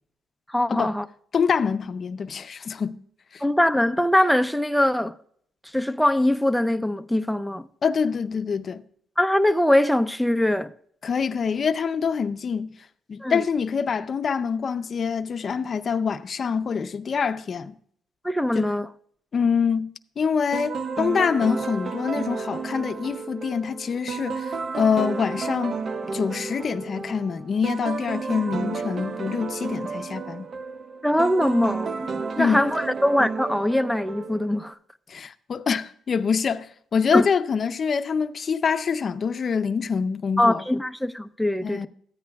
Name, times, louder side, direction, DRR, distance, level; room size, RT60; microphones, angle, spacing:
voice 1, 0.5-1.1 3.4-5.1 5.7-7.7 9.2-10.7 13.2-13.4 18.2-18.9 31.0-34.7 37.1-37.3 40.4-41.9, left 1 dB, ahead, 0.5 m, -22 dB
voice 2, 1.3-3.0 3.3-3.4 7.8-8.8 11.0-12.8 13.1-17.8 18.5-18.7 19.3-19.9 20.2-25.8 26.1-30.5 32.4-32.7 35.1-40.6 41.6-41.9, left 6 dB, 45° left, 0.6 m, -25 dB
sound 1, 20.5-34.7, right 4 dB, 45° right, 0.6 m, -32 dB
14.0 x 9.5 x 2.3 m
cardioid pair, 90°, 0 cm